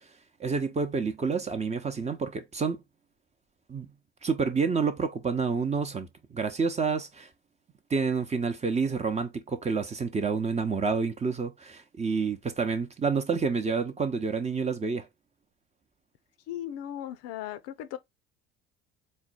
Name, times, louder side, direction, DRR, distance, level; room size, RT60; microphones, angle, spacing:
voice 1, 0.4-2.8 3.7-3.9 4.2-7.3 7.9-15.1, right 5 dB, 20° right, 0.8 m, -29 dB
voice 2, 16.5-18.0, left 11 dB, 55° left, 0.6 m, -37 dB
4.3 x 2.2 x 4.0 m
figure-of-eight pair, 65°, 31 cm